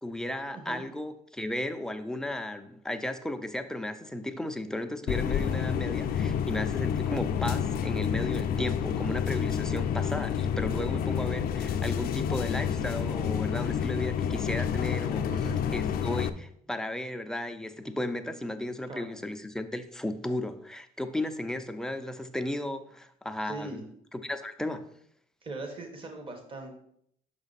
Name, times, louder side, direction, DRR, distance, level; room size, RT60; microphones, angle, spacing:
voice 1, 0.0-15.3 15.7-23.8 24.1-24.9, left 1 dB, 5° left, 7 dB, 0.5 m, -34 dB
voice 2, 0.5-0.8 15.3-15.6 18.9-19.1 23.4-23.8 25.4-26.7, right 3 dB, 30° right, 3 dB, 1.4 m, -40 dB
sound 1, 5.1-16.3, left 8 dB, 60° left, 0.5 m, -29 dB
6.1 x 4.9 x 4.1 m, 0.69 s
cardioid pair, 110°, 17 cm